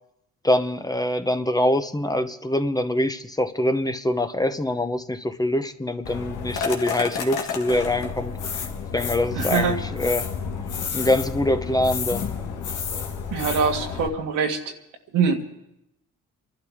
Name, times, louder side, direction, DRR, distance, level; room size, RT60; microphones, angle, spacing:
voice 1, 0.4-10.3 10.9-12.3, left 1 dB, 10° left, 8 dB, 0.9 m, -24 dB
sound 1, 6.0-14.1, left 6 dB, 90° left, 1.7 m, -30 dB
voice 2, 9.4-9.8 13.3-14.6 15.1-15.5, right 5 dB, 85° right, 2 dB, 1.9 m, -23 dB
29.0 x 12.0 x 3.6 m, 0.84 s
cardioid pair, 90°, 30 cm